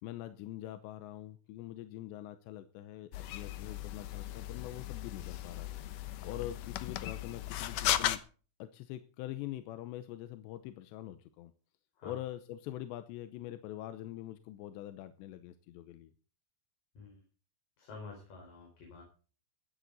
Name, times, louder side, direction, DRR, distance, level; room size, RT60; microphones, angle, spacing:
voice 1, 0.0-5.7 6.2-8.2 8.6-11.5 12.0-16.1, left 13 dB, 90° left, 10 dB, 3.1 m, -44 dB
sound 1, 3.1-8.2, left 13 dB, 70° left, 2.0 m, -36 dB
voice 2, 17.8-19.0, left 4 dB, 55° left, 0 dB, 6.3 m, -49 dB
16.0 x 12.5 x 4.1 m, 0.38 s
omnidirectional pair, 4.9 m